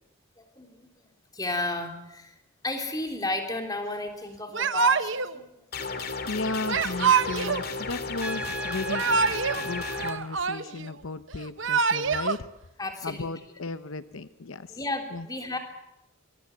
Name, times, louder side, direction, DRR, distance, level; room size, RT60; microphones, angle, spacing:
voice 1, 0.6-0.9 1.3-2.3 2.6-5.5 12.8-13.3 14.7-15.6, left 2 dB, 20° left, 4 dB, 3.4 m, -33 dB
Yell / Crying sobbing, 4.5-5.3 6.7-7.7 8.7-9.6 9.9-10.9 11.4-12.4, right 5 dB, 60° right, 1.0 m, -25 dB
sound 1, 5.7-10.1, left 4 dB, 45° left, 2.5 m, -34 dB
voice 2, 6.3-12.4 13.0-14.8 15.1-15.3, left 3 dB, 75° left, 12 dB, 0.8 m, -35 dB
Trumpet, 8.2-10.2, right 2 dB, 5° right, 1.0 m, -36 dB
25.5 x 20.5 x 8.3 m, 0.89 s
head